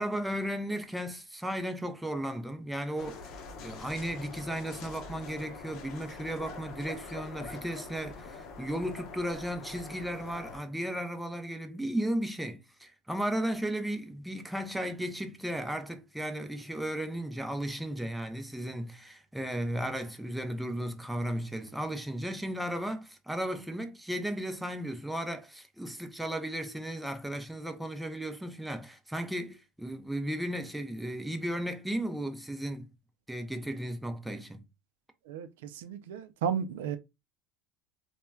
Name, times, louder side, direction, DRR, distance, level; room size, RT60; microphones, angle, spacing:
voice 1, 0.0-32.9 33.3-34.6, right 1 dB, 5° right, 0.5 m, -35 dB
sound 1, 3.0-10.6, left 4 dB, 55° left, 0.7 m, -44 dB
voice 2, 35.3-37.0, right 7 dB, 80° right, 0.4 m, -34 dB
3.0 x 2.1 x 2.2 m
hypercardioid pair, 95°, 0 cm